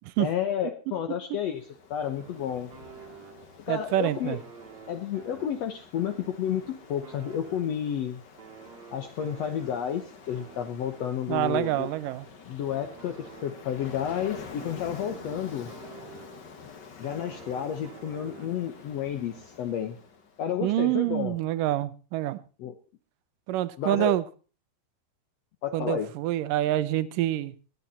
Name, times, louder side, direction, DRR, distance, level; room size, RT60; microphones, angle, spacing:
voice 1, 0.2-2.7 3.7-4.4 4.9-8.2 8.9-11.9 12.5-15.7 17.0-20.0 20.4-21.3 22.6-22.7 23.8-24.1 25.6-26.1, left 9 dB, 80° left, 6 dB, 1.5 m, -31 dB
Ocean, 1.4-20.5, left 5 dB, 50° left, 1.2 m, -48 dB
sound 1, 2.2-3.7 4.0-8.0 8.4-12.3 12.7-16.6 17.0-18.9, right 7 dB, 55° right, 2.6 m, -50 dB
voice 2, 3.7-4.4 11.3-12.3 20.6-22.4 23.5-24.2 25.7-27.5, right 14 dB, 75° right, 15 dB, 2.2 m, -26 dB
19.0 x 9.8 x 4.2 m, 0.36 s
omnidirectional pair, 4.5 m